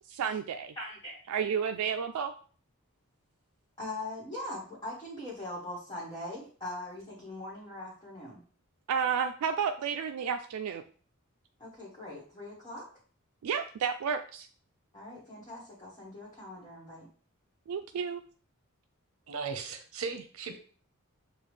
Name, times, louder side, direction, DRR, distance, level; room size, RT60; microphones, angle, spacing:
voice 1, 0.1-0.7 1.3-2.3 8.9-10.8 13.4-14.5 17.7-18.2, right 7 dB, 90° right, 6 dB, 0.3 m, -31 dB
voice 2, 0.8-1.2 3.8-8.4 11.6-12.9 14.9-17.1, left 1 dB, 20° left, -7 dB, 1.3 m, -41 dB
voice 3, 19.3-20.6, right 5 dB, 70° right, 6 dB, 0.7 m, -37 dB
6.9 x 2.4 x 3.1 m, 0.42 s
head